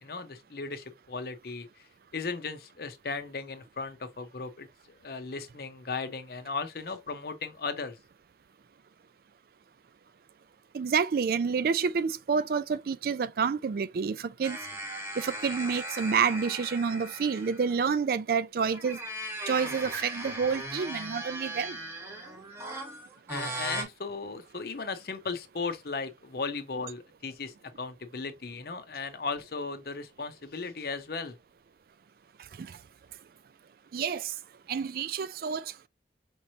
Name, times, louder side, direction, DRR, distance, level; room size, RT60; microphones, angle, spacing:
voice 1, 0.0-1.9 2.1-4.7 5.0-8.0 23.3-31.4, left 4 dB, 60° left, 0.7 m, -36 dB
voice 2, 10.7-14.6 15.2-19.0 19.5-21.8 32.6-32.8 33.9-34.3 34.7-35.9, right 6 dB, 55° right, 0.3 m, -29 dB
sound 1, 14.4-18.0 18.6-23.8, right 1 dB, 15° right, 1.1 m, -38 dB
5.2 x 3.0 x 2.8 m
head